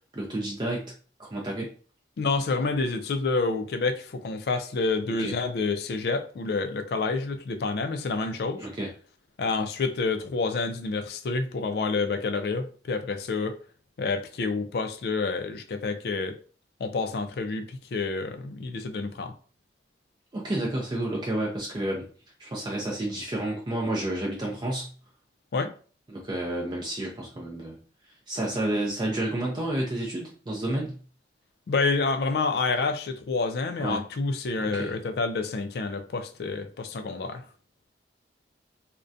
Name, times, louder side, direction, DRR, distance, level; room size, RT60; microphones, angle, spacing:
voice 1, 0.1-0.9 1.2-1.7 5.1-5.3 8.6-8.9 20.3-22.1 22.4-24.9 26.1-27.8 28.1-31.0 33.8-34.0 34.6-35.0, right 1 dB, 25° right, 0.4 m, -30 dB
voice 2, 2.2-8.7 9.4-13.6 14.0-16.4 16.8-19.3 25.5-25.7 31.7-37.4, left 3 dB, 55° left, 0.3 m, -28 dB
2.3 x 2.1 x 2.5 m
head